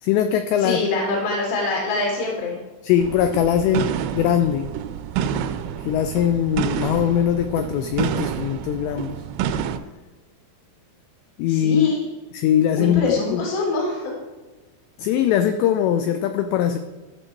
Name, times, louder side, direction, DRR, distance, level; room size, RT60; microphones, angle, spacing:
voice 1, 0.0-0.8 2.8-4.7 5.8-9.2 11.4-11.9 12.3-13.5 15.0-16.8, left 9 dB, 85° left, 8 dB, 2.5 m, -21 dB
voice 2, 0.6-2.6 11.5-12.0 12.8-14.1, left 2 dB, 55° left, -2 dB, 3.3 m, -24 dB
sound 1, 3.0-9.8, right 8 dB, 85° right, 2.9 m, -28 dB
14.0 x 6.6 x 4.6 m, 1.2 s
omnidirectional pair, 5.6 m